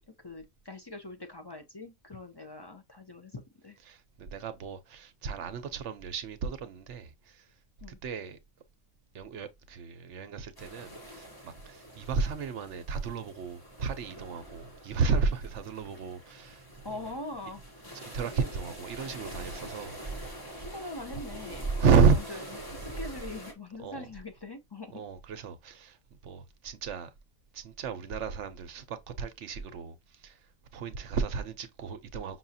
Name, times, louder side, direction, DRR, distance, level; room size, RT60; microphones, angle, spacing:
voice 1, 0.2-3.8 7.8-8.0 16.8-17.6 20.6-21.7 22.3-22.4 22.7-25.0, left 2 dB, 40° left, 0.3 m, -42 dB
voice 2, 3.9-7.5 7.9-8.4 9.1-16.6 17.9-20.0 20.5-20.7 21.8-22.4 23.8-24.0 24.9-26.0 26.2-27.1 27.5-30.5 30.7-32.4, right 5 dB, 65° right, 1.0 m, -32 dB
sound 1, 10.6-23.5, right 2 dB, 20° left, 1.0 m, -43 dB
6.0 x 2.4 x 2.7 m
omnidirectional pair, 1.4 m